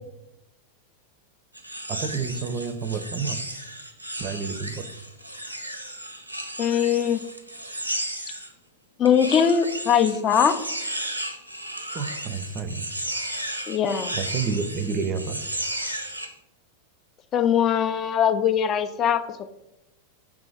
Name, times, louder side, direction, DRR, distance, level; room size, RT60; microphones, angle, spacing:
sound 1, 1.5-8.5 9.0-16.3, right 1 dB, 90° right, 0.5 m, -34 dB
voice 1, 1.9-3.4 4.1-4.8 11.9-12.9 14.1-15.4, right 5 dB, 35° right, 9 dB, 0.4 m, -29 dB
voice 2, 6.6-7.2 9.0-10.6 13.7-14.2 17.3-19.2, left 8 dB, 30° left, 10 dB, 0.4 m, -21 dB
3.6 x 3.0 x 4.7 m, 0.89 s
figure-of-eight pair, 90°, 0 cm